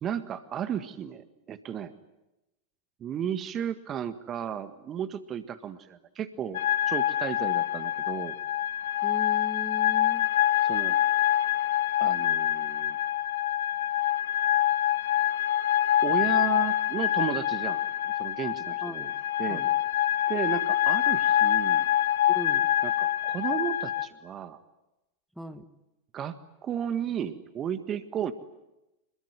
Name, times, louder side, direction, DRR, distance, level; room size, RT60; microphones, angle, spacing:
voice 1, 0.0-1.9 3.0-6.6 6.9-8.3 10.6-11.0 12.0-13.0 16.0-17.8 18.2-19.1 19.4-19.6 20.3-21.9 22.8-24.6 26.1-28.3, right 9 dB, 30° right, 12 dB, 1.7 m, -34 dB
sound 1, 6.5-24.1, left 12 dB, 60° left, 1.3 m, -26 dB
voice 2, 9.0-10.3 18.8-19.1 19.5-19.7 22.3-22.7 25.4-25.7, equal, ahead, 10 dB, 1.7 m, -39 dB
27.0 x 22.0 x 9.8 m, 0.97 s
figure-of-eight pair, 90°, 0 cm